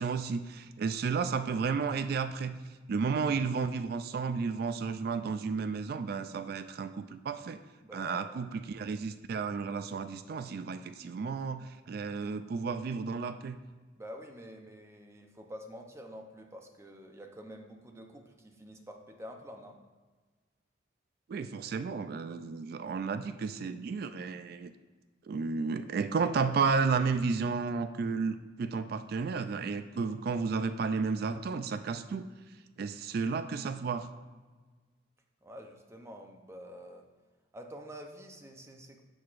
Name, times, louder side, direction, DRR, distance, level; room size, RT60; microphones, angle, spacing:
voice 1, 0.0-2.6 2.9-7.6 7.9-13.6 21.3-24.7 25.3-32.2 32.8-34.1, right 5 dB, 50° right, 11 dB, 0.3 m, -32 dB
voice 2, 7.8-8.4 14.0-19.8 35.4-37.0 37.5-39.0, equal, 15° right, 3 dB, 0.6 m, -47 dB
10.5 x 6.4 x 2.5 m, 1.3 s
head